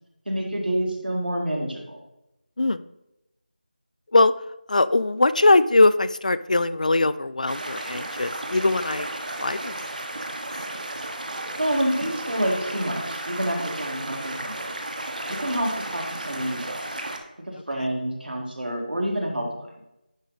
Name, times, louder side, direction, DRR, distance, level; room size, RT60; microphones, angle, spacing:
voice 1, 0.3-2.0 11.6-14.7 15.3-17.0 17.4-19.7, right 1 dB, 80° right, 0 dB, 2.0 m, -28 dB
voice 2, 4.7-9.1 9.4-9.7 15.3-15.4, left 2 dB, 50° left, 15 dB, 0.3 m, -21 dB
sound 1, 7.5-17.2, right 1 dB, 55° right, 1.1 m, -33 dB
10.5 x 3.7 x 4.0 m, 0.90 s
figure-of-eight pair, 170°, 5 cm